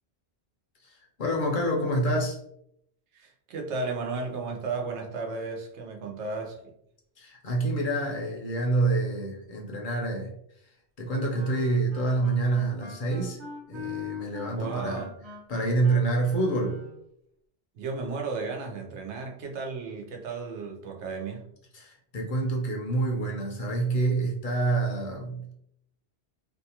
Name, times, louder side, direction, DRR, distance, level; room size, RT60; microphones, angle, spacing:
voice 1, 0.8-2.4 7.2-10.3 11.0-13.4 13.7-15.1 15.5-16.8 21.7-25.5, right 2 dB, 55° left, 0 dB, 0.7 m, -27 dB
voice 2, 3.1-6.6 14.5-15.1 17.7-21.5, right 4 dB, 90° right, 1 dB, 0.9 m, -34 dB
Wind instrument woodwind instrument, 11.3-17.0, left 5 dB, 35° right, 0.5 m, -42 dB
2.6 x 2.3 x 2.8 m, 0.73 s
omnidirectional pair, 1.1 m